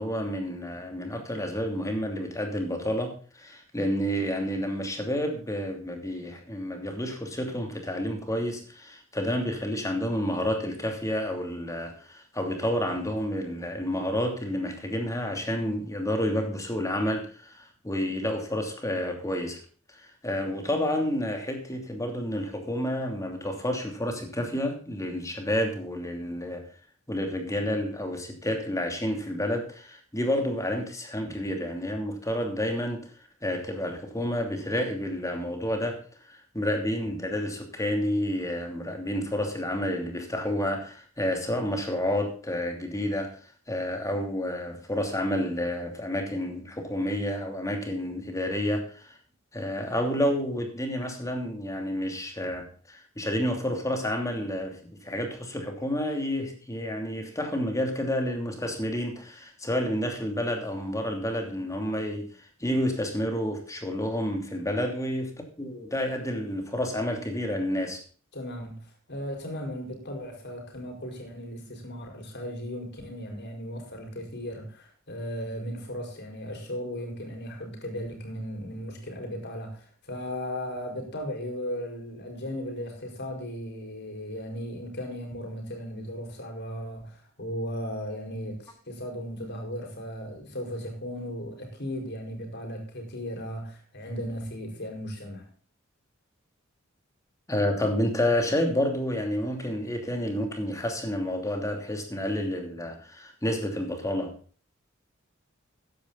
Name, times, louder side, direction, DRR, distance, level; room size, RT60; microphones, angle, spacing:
voice 1, 0.0-19.6 20.0-26.6 27.1-33.1 33.4-36.0 36.3-43.3 43.7-49.2 49.5-62.3 62.6-68.0 97.5-104.3, left 1 dB, 15° left, 2.9 m, -30 dB
voice 2, 68.3-95.5, equal, 55° left, 5.0 m, -36 dB
14.5 x 10.5 x 4.0 m
head